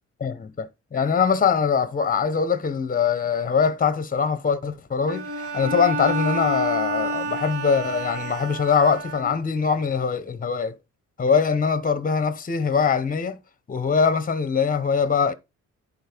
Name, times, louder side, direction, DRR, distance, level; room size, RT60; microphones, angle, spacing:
voice 1, 0.2-10.8 11.2-13.4 13.7-15.3, left 6 dB, 30° left, 1.0 m, -22 dB
Bowed string instrument, 5.1-9.7, right 2 dB, 50° right, 1.7 m, -29 dB
10.5 x 4.3 x 4.5 m
cardioid pair, 90°, 30 cm